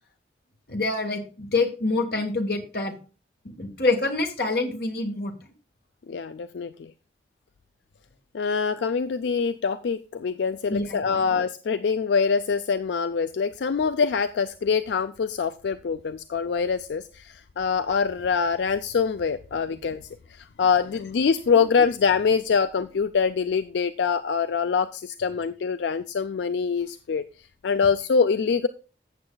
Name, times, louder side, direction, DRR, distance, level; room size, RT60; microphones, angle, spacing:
voice 1, 0.7-2.9 3.6-5.3 10.7-11.4 21.5-21.6, left 3 dB, 60° left, 4 dB, 1.4 m, -26 dB
voice 2, 6.1-6.9 8.3-27.2 27.6-28.7, left 5 dB, 80° left, 12 dB, 0.4 m, -24 dB
15.0 x 7.0 x 2.3 m, 0.35 s
head